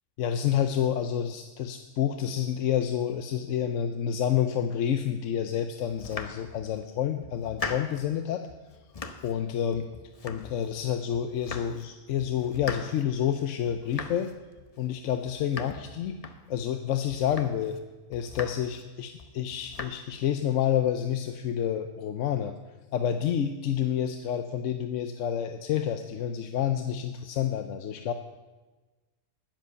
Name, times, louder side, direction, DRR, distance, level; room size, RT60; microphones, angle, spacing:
voice 1, 0.2-8.4 9.2-9.9 10.2-14.3 14.8-16.2 16.5-17.8 18.1-22.5 22.9-28.1, left 9 dB, 75° left, 8 dB, 1.0 m, -29 dB
Domestic sounds home sounds, 5.9-6.8 7.2-8.1 8.5-9.4 9.7-10.8 11.1-11.9 12.2-16.7 17.1-17.8 18.1-18.9 19.2-19.9, left 4 dB, 35° left, 0.8 m, -41 dB
10.5 x 10.5 x 6.7 m, 1.2 s
omnidirectional pair, 1.3 m